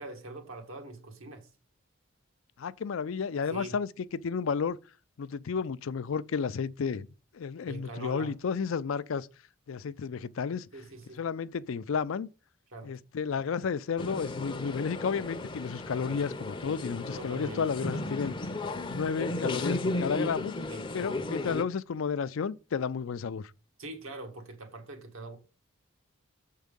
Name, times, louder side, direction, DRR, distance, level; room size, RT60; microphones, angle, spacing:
voice 1, 0.0-1.5 3.5-3.8 7.7-8.3 10.7-11.2 12.7-12.9 17.1-17.6 17.9-18.2 20.7-21.2 23.8-25.4, right 2 dB, 80° right, 1.8 m, -43 dB
voice 2, 2.6-4.8 5.2-7.1 7.3-9.3 9.7-10.7 11.2-12.3 12.8-18.3 18.9-20.6 20.9-23.5, left 6 dB, 75° left, 0.4 m, -32 dB
sound 1, 14.0-21.6, left 2 dB, 25° left, 0.5 m, -35 dB
7.3 x 4.6 x 5.2 m
head